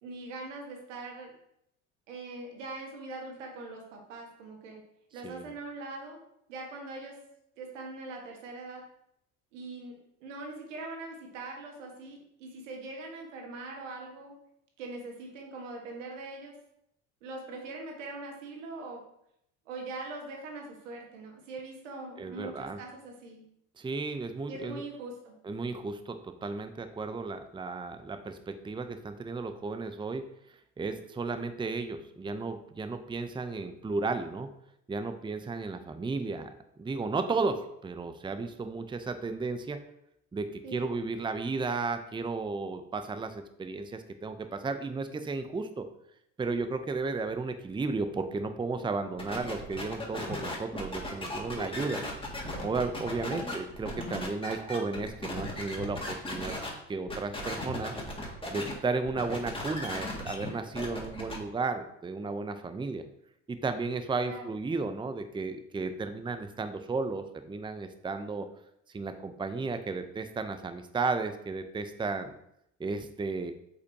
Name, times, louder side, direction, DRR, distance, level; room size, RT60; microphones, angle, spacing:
voice 1, 0.0-1.3 2.1-4.8 5.1-6.2 6.5-7.1 7.6-8.8 9.5-14.3 14.8-16.5 17.2-19.0 19.7-23.4 24.5-25.3 40.6-40.9 53.3-53.6 64.2-64.4, right 3 dB, 85° right, 1 dB, 1.6 m, -42 dB
voice 2, 22.2-22.8 23.8-24.8 25.4-34.5 34.9-36.5 36.8-39.8 40.3-45.8 46.4-52.0 52.6-56.5 56.9-63.0 63.5-68.5 68.9-72.3 72.8-73.5, right 3 dB, 15° right, 9 dB, 0.6 m, -34 dB
sound 1, 49.2-56.7 57.1-58.7 59.0-61.4, left 1 dB, 15° left, 2.0 m, -37 dB
8.0 x 5.3 x 2.8 m, 0.77 s
hypercardioid pair, 65°, 36 cm